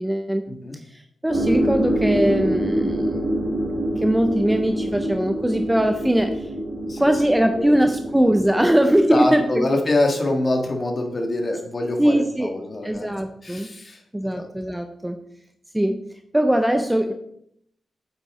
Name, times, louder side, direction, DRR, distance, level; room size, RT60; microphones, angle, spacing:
voice 1, 0.0-0.4 0.9-3.4 4.0-6.5 7.0-9.7 12.0-12.5 12.8-13.7 14.1-15.2 15.7-16.0 16.3-17.1, right 1 dB, 5° right, 6 dB, 0.5 m, -21 dB
sound 1, 1.3-9.4, right 1 dB, 45° right, 2.8 m, -26 dB
voice 2, 9.1-13.1 13.4-14.5, left 2 dB, 30° left, 3 dB, 1.6 m, -25 dB
8.3 x 8.1 x 3.7 m, 0.72 s
wide cardioid pair, 140°, 0 cm